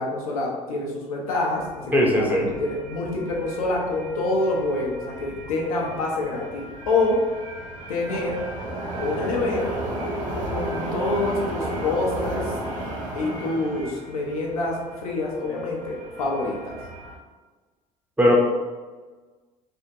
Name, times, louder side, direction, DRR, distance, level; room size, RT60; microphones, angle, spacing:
voice 1, 0.0-7.3 7.9-8.4 9.0-9.8 10.5-12.5 13.1-16.8, left 2 dB, 90° left, -2 dB, 0.6 m, -26 dB
sound 1, 1.3-17.2, right 1 dB, 45° right, 0.8 m, -34 dB
voice 2, 1.9-2.5 18.2-18.3, equal, 10° right, -2 dB, 0.8 m, -18 dB
3.4 x 2.1 x 2.8 m, 1.3 s
hypercardioid pair, 70°, 18 cm